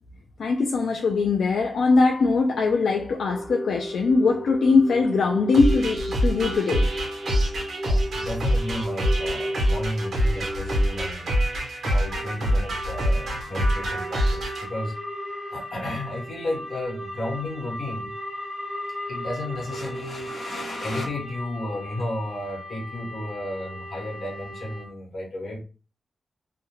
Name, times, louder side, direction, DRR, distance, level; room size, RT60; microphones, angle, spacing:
voice 1, 0.4-6.9, left 4 dB, 80° left, 0.3 m, -21 dB
sound 1, 3.3-11.1, right 1 dB, 25° left, 0.8 m, -34 dB
sound 2, 5.5-14.6, equal, 60° right, 0.9 m, -25 dB
voice 2, 7.9-11.4 11.8-15.0 15.5-18.1 19.1-25.6, left 1 dB, 60° left, 1.0 m, -33 dB
sound 3, 12.1-24.8, equal, 10° right, 1.2 m, -37 dB
2.3 x 2.1 x 3.0 m
wide cardioid pair, 150°, 0 cm